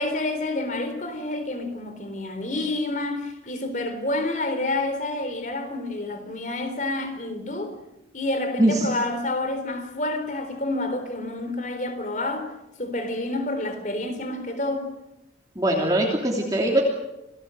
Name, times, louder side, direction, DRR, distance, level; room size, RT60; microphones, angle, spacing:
voice 1, 0.0-7.7 8.1-12.5 12.8-14.9, left 2 dB, 45° left, 3.9 m, -28 dB
voice 2, 15.6-16.8, right 1 dB, 20° right, 3.0 m, -21 dB
28.0 x 17.5 x 7.8 m
head